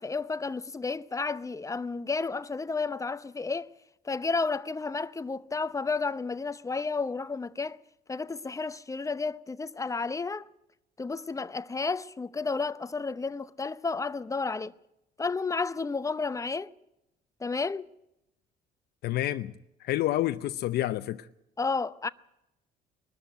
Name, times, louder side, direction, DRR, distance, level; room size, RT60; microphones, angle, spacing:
voice 1, 0.0-3.7 4.0-7.8 8.1-10.5 11.0-14.7 15.2-16.7 17.4-17.9 21.6-22.1, left 4 dB, 20° left, 0.7 m, -32 dB
voice 2, 19.0-19.5 19.8-21.3, left 14 dB, 75° left, 0.7 m, -28 dB
22.5 x 13.0 x 9.1 m
cardioid pair, 110°, 17 cm